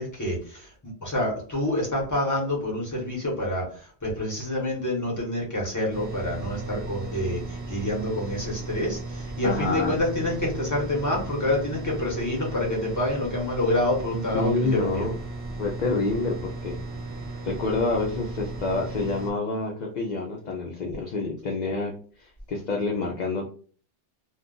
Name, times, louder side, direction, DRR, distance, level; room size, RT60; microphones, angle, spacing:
voice 1, 0.0-15.1, left 1 dB, 15° left, -2 dB, 0.9 m, -27 dB
sound 1, 5.9-19.3, right 3 dB, 10° right, 0.9 m, -36 dB
voice 2, 9.4-10.0 14.3-15.2 15.6-16.8 17.4-23.5, left 3 dB, 55° left, -1 dB, 0.5 m, -28 dB
2.4 x 2.3 x 3.7 m, 0.43 s
omnidirectional pair, 1.2 m